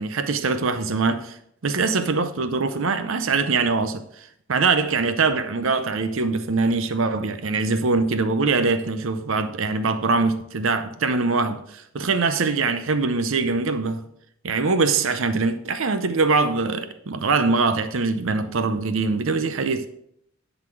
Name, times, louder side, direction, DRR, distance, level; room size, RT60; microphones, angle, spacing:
voice 1, 0.0-14.0 14.4-19.9, right 4 dB, 65° right, 0.7 m, -23 dB
11.0 x 4.1 x 7.5 m
head